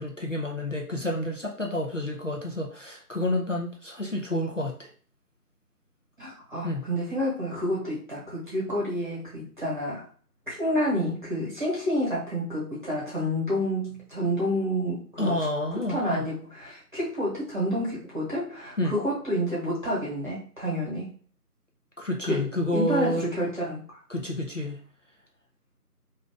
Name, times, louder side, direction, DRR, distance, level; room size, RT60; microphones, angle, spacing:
voice 1, 0.0-4.9 6.6-6.9 15.2-16.2 18.8-18.9 22.0-23.3 24.1-24.8, left 1 dB, 50° left, 0 dB, 0.5 m, -29 dB
voice 2, 6.2-10.1 10.5-15.4 15.7-21.1 22.2-24.0, equal, 30° right, -7 dB, 1.2 m, -29 dB
2.6 x 2.3 x 3.5 m, 0.42 s
figure-of-eight pair, 180°, 48 cm